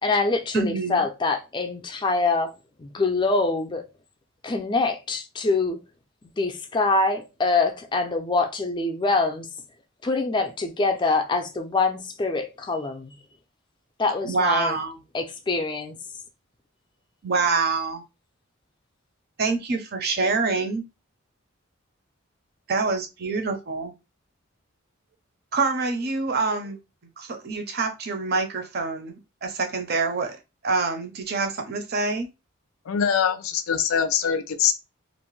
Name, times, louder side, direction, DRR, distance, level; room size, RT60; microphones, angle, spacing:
voice 1, 0.0-2.5 2.8-3.8 4.4-5.8 6.4-9.5 10.0-13.2 14.0-14.8 15.1-16.0, left 3 dB, 20° left, 0.4 m, -24 dB
voice 2, 0.5-1.0 14.2-15.0 17.2-18.0 19.4-20.8 22.7-23.9 25.5-26.8 27.2-30.4 30.6-32.3, right 4 dB, 50° right, 0.5 m, -26 dB
voice 3, 32.9-34.7, left 7 dB, 85° left, 0.4 m, -23 dB
2.5 x 2.1 x 3.1 m
head